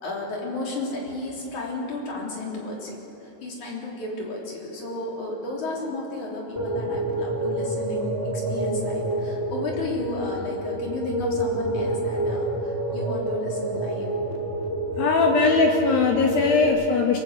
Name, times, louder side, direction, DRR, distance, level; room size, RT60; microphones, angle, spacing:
voice 1, 0.0-3.0 3.2-14.1, left 2 dB, 40° left, -3 dB, 4.3 m, -33 dB
sound 1, 6.5-16.7, right 1 dB, 5° right, 1.7 m, -28 dB
voice 2, 15.0-17.2, left 4 dB, 70° left, 2 dB, 2.4 m, -20 dB
26.5 x 20.0 x 8.2 m, 3.0 s
omnidirectional pair, 5.9 m